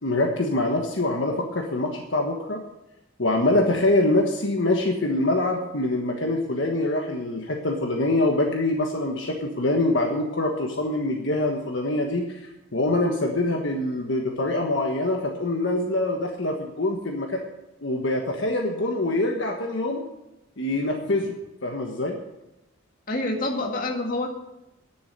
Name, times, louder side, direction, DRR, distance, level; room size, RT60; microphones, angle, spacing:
voice 1, 0.0-2.6 3.2-12.4 12.7-17.4 17.8-20.0 20.6-22.2, left 2 dB, 65° left, 1 dB, 1.4 m, -24 dB
voice 2, 23.1-24.3, left 2 dB, 45° left, 1 dB, 1.9 m, -27 dB
10.5 x 7.1 x 8.7 m, 0.93 s
head